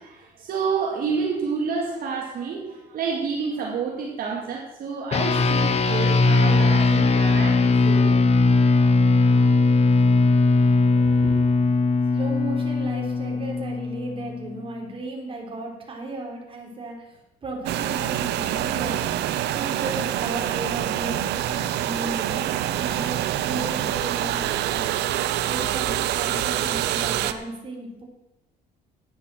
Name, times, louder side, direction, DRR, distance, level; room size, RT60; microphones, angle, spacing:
voice 1, 0.0-8.2 10.9-11.4, right 5 dB, 60° right, -1 dB, 2.2 m, -29 dB
sound 1, 5.1-14.7, left 3 dB, 40° left, 1.0 m, -19 dB
voice 2, 12.1-19.1 19.5-28.0, right 2 dB, 30° right, 0 dB, 3.8 m, -35 dB
sound 2, 17.7-27.3, right 12 dB, 80° right, 0.7 m, -26 dB
11.0 x 9.5 x 6.2 m, 0.93 s
cardioid pair, 110°, 17 cm